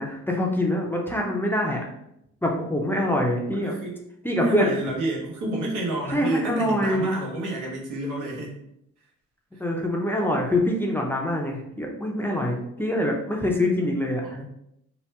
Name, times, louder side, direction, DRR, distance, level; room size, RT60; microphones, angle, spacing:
voice 1, 0.0-1.8 2.4-3.7 4.2-4.7 6.1-7.2 9.6-14.2, left 1 dB, 5° left, -1 dB, 0.5 m, -25 dB
voice 2, 3.5-4.0 4.4-8.5 9.5-9.6 14.2-14.4, right 1 dB, 85° right, -3 dB, 1.0 m, -29 dB
2.8 x 2.1 x 3.2 m, 0.77 s
cardioid pair, 90°, 30 cm